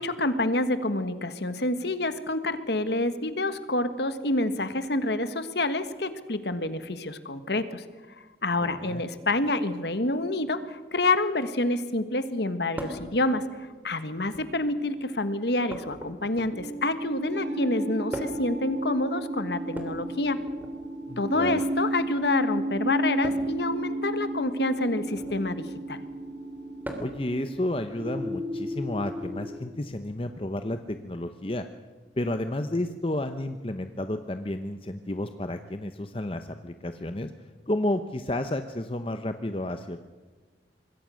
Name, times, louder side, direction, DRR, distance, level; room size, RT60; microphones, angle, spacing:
voice 1, 0.0-7.8 8.4-20.4 21.2-26.0, left 2 dB, 70° left, 11 dB, 1.5 m, -28 dB
voice 2, 8.6-9.0 21.1-21.6 27.0-31.7 32.2-37.3 37.7-40.0, left 1 dB, 30° left, 8 dB, 0.8 m, -31 dB
sound 1, 12.8-13.1 14.2-14.7 15.7-16.8 18.1-18.5 19.7-20.7 21.4-21.8 23.2-23.5 25.1-25.5 26.8-27.2 28.7-28.8 30.0-30.1, equal, 10° right, 3.0 m, -39 dB
sound 2, 16.5-29.5, right 1 dB, 85° right, 5.2 m, -33 dB
26.0 x 21.5 x 6.4 m, 1.4 s
head